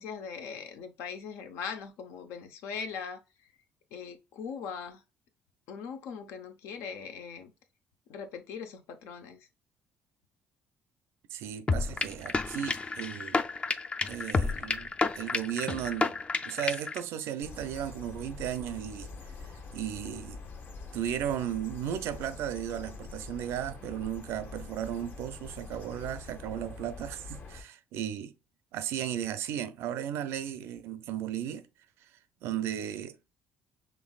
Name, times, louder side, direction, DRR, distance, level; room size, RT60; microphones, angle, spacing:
voice 1, 0.0-3.2 3.9-5.0 5.7-7.5 8.1-9.5, left 6 dB, 85° left, 0.7 m, -40 dB
voice 2, 11.3-13.4 14.1-16.1 16.4-19.1 19.7-20.4 20.9-28.3 28.7-31.7 32.4-33.2, right 10 dB, 75° right, 0.5 m, -35 dB
sound 1, 11.7-17.0, left 3 dB, 25° left, 0.4 m, -30 dB
sound 2, 17.4-27.6, left 4 dB, 50° left, 0.9 m, -45 dB
5.3 x 3.1 x 2.3 m
cardioid pair, 90°, 4 cm